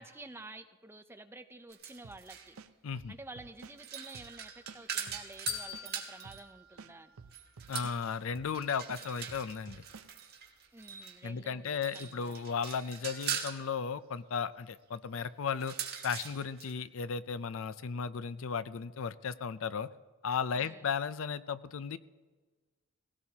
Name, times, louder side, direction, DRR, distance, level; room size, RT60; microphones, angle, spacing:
voice 1, 0.0-2.6 3.1-7.1 10.7-12.4 20.5-20.9, right 2 dB, 10° right, 8 dB, 0.5 m, -50 dB
sound 1, 1.7-2.6 3.6-6.5 7.3-11.2 11.7-13.6 15.5-16.7, right 8 dB, 45° right, 1.6 m, -42 dB
sound 2, 2.0-2.2 2.6-3.8 4.1-4.3 4.7-5.9 6.3-6.4 6.8-8.0 8.4-8.5 8.9-10.1, right 5 dB, 75° right, 0.6 m, -51 dB
voice 2, 2.8-3.1 7.7-9.8 11.2-15.8 16.0-19.9 20.2-22.0, left 6 dB, 65° left, 15 dB, 0.4 m, -35 dB
sound 3, 5.5-7.7, left 8 dB, 45° left, 2.6 m, -44 dB
18.5 x 17.0 x 2.8 m, 1.3 s
head